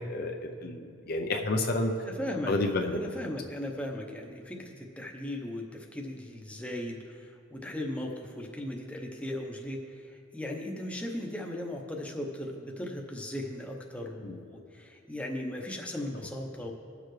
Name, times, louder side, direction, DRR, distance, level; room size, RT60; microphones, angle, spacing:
voice 1, 0.1-1.9 2.5-3.0 14.2-14.4, left 2 dB, 50° left, 3 dB, 0.6 m, -30 dB
voice 2, 2.1-16.7, left 1 dB, 5° left, 1 dB, 0.8 m, -37 dB
20.0 x 6.7 x 3.2 m, 2.4 s
head